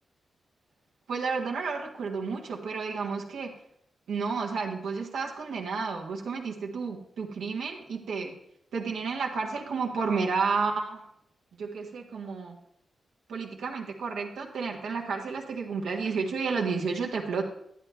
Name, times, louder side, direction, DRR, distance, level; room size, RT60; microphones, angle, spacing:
voice 1, 1.1-3.5 4.1-8.3 8.7-11.0 11.6-12.6 13.3-17.4, right 5 dB, 90° right, 0 dB, 1.4 m, -31 dB
11.0 x 8.9 x 3.4 m, 0.74 s
cardioid pair, 55°, 0 cm